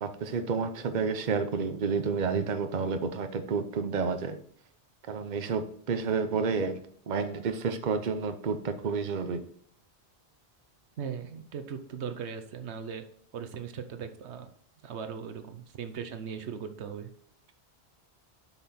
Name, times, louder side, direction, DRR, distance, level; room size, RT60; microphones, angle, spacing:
voice 1, 0.0-4.4 5.1-6.8 7.1-9.4, right 5 dB, 45° right, 8 dB, 0.9 m, -30 dB
voice 2, 11.0-13.0 13.3-14.5 14.8-17.1, right 7 dB, 80° right, 9 dB, 1.1 m, -38 dB
7.1 x 6.0 x 4.2 m, 0.63 s
omnidirectional pair, 1.1 m